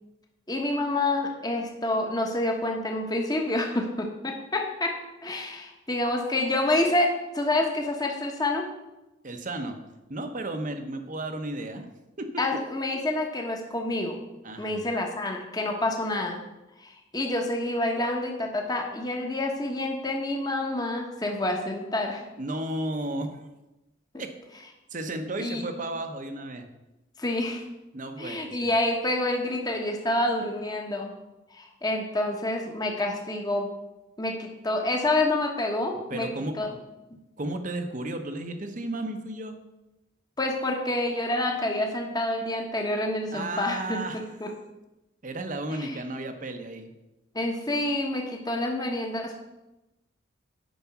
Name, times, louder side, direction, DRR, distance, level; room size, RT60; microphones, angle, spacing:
voice 1, 0.5-5.0 5.2-8.7 12.4-14.2 14.6-16.4 16.8-22.2 24.1-24.2 25.4-25.7 27.2-27.6 28.2-31.1 31.5-33.7 34.2-36.3 36.6-36.7 40.4-44.5 45.7-46.0 47.3-49.4, left 1 dB, 20° left, 2 dB, 1.1 m, -28 dB
voice 2, 9.2-9.8 10.1-11.9 12.2-12.4 14.4-14.8 22.4-23.4 24.2-24.3 24.9-26.7 27.9-28.7 36.1-36.8 37.4-39.6 43.3-44.3 45.2-46.9, right 1 dB, 40° right, 7 dB, 0.9 m, -33 dB
9.3 x 5.2 x 5.9 m, 0.99 s
head